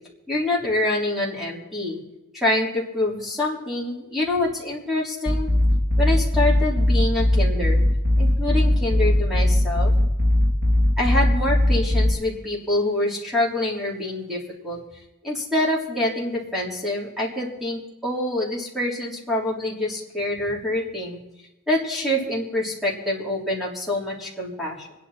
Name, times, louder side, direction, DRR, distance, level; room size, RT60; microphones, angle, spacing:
voice 1, 0.3-2.0 2.3-5.5 6.0-7.8 8.2-9.9 11.0-14.8 15.2-21.2 21.7-24.9, left 1 dB, ahead, -5 dB, 3.6 m, -26 dB
sound 1, 5.3-12.1, left 1 dB, 50° right, 1.8 m, -19 dB
27.0 x 10.0 x 4.3 m, 0.99 s
head